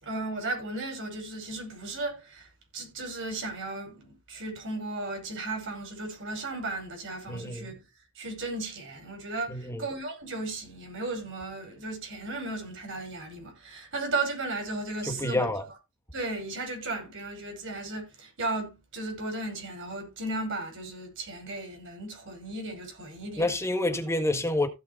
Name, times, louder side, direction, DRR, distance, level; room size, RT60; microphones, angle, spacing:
voice 1, 0.0-2.5 2.7-7.8 8.2-15.5 16.1-23.5 23.9-24.0, right 2 dB, 65° right, 5.6 m, -35 dB
voice 2, 7.3-7.7 9.5-9.8 15.1-15.6 23.4-24.7, left 2 dB, 15° left, 1.6 m, -28 dB
16.0 x 5.6 x 4.0 m
head